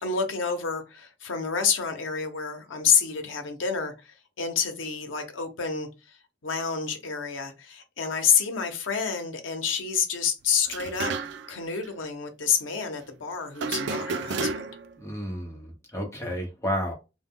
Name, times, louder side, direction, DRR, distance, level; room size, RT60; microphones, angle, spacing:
voice 1, 0.0-6.2 6.4-11.1 11.5-14.7, left 6 dB, 90° left, 0.7 m, -28 dB
sound 1, 10.6-11.6 11.8-11.9 13.6-14.9, right 4 dB, 65° right, 0.3 m, -31 dB
voice 2, 15.0-16.9, equal, 15° left, 0.8 m, -31 dB
2.2 x 2.1 x 3.5 m
head